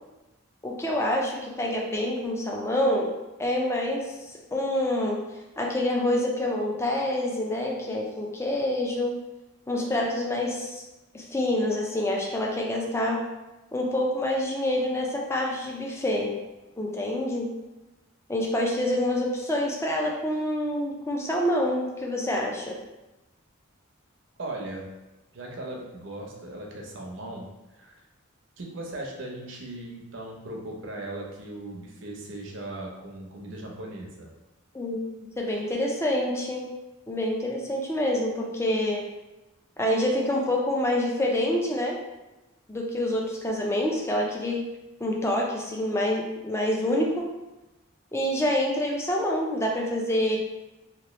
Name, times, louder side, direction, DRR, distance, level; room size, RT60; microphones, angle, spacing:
voice 1, 0.6-3.1 3.4-4.1 4.5-5.2 5.6-9.1 9.7-10.8 11.1-13.2 13.7-16.4 16.8-17.5 18.3-22.8 34.7-36.6 37.1-39.0 39.8-42.0 42.7-44.6 45.0-47.2 48.1-50.4, left 1 dB, 15° left, -1 dB, 0.4 m, -27 dB
voice 2, 24.4-24.9 25.3-28.0 28.6-34.3, right 1 dB, 60° right, 0 dB, 0.7 m, -38 dB
3.0 x 3.0 x 3.0 m, 1.0 s
head